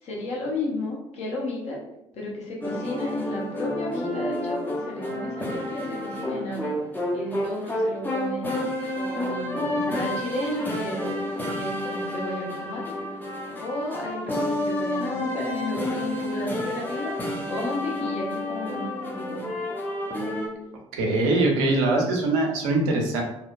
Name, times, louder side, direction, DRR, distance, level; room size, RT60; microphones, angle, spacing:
voice 1, 0.0-1.8 2.1-6.7 7.1-8.5 9.0-11.2 11.5-12.9 13.6-17.1 17.5-19.4, left 1 dB, 50° left, -3 dB, 0.8 m, -33 dB
sound 1, 2.6-20.5, left 1 dB, 10° left, 0.6 m, -30 dB
voice 2, 20.9-23.2, right 2 dB, 65° right, 1 dB, 0.6 m, -22 dB
2.7 x 2.1 x 2.4 m, 0.85 s
figure-of-eight pair, 50°, 15 cm